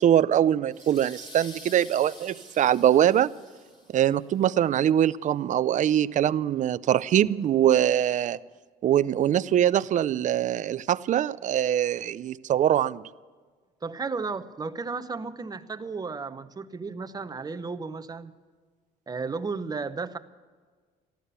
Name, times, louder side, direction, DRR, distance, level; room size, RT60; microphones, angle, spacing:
voice 1, 0.0-3.3 3.9-8.4 8.8-13.0, right 10 dB, 50° right, 17 dB, 0.5 m, -23 dB
sound 1, 0.7-4.2, left 2 dB, 30° left, 2.6 m, -48 dB
voice 2, 13.8-18.4 19.1-20.2, right 4 dB, 25° right, 10 dB, 0.9 m, -34 dB
14.0 x 13.0 x 6.8 m, 1.5 s
cardioid pair, 110°, 17 cm